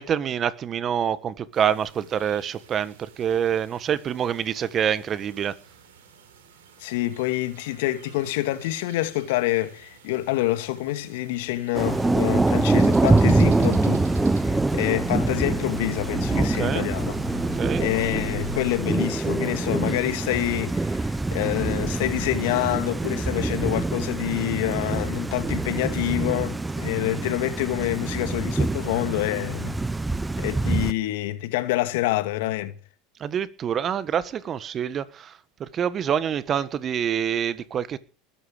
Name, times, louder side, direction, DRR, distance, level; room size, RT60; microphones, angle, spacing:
voice 1, 0.0-5.5 16.3-16.9 17.3-17.8 33.2-35.3 35.6-38.0, right 8 dB, 35° right, 1.4 m, -26 dB
sound 1, 1.5-14.4, right 7 dB, 75° right, 4.7 m, -51 dB
voice 2, 6.8-14.1 14.4-17.2 17.8-29.7 30.4-32.7, left 16 dB, 65° left, 2.2 m, -27 dB
Thunder / Rain, 11.7-30.9, right 2 dB, 10° right, 0.8 m, -25 dB
sound 2, 11.8-18.8, left 4 dB, 90° left, 2.4 m, -38 dB
21.0 x 11.5 x 5.1 m
hypercardioid pair, 80°, 0 cm